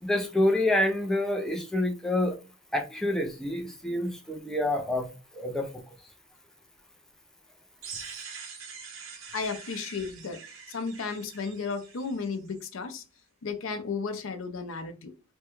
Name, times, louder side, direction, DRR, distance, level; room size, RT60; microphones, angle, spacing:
voice 1, 0.0-2.3 2.7-5.1 5.3-5.7, left 1 dB, ahead, 0.5 m, -27 dB
sound 1, 7.8-12.7, right 5 dB, 75° right, 0.9 m, -44 dB
voice 2, 9.3-10.4 10.7-13.0 13.4-15.1, left 4 dB, 70° left, 0.5 m, -34 dB
3.4 x 2.2 x 2.9 m
head